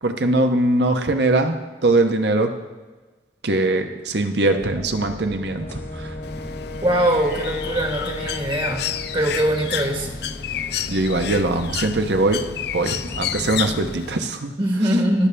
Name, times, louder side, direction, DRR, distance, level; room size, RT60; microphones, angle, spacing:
voice 1, 0.0-2.5 3.4-6.1 10.9-12.4 12.7-14.5, right 2 dB, 65° right, 6 dB, 1.1 m, -21 dB
sound 1, 4.6-14.0, equal, 15° left, 0.8 m, -36 dB
Wind instrument woodwind instrument, 5.5-9.8, left 2 dB, 40° left, 0.9 m, -36 dB
Bird, 6.2-14.3, left 10 dB, 60° left, 0.4 m, -31 dB
voice 2, 6.8-10.1 14.6-15.3, right 1 dB, 30° right, 2 dB, 1.5 m, -22 dB
19.5 x 6.9 x 3.4 m, 1.3 s
head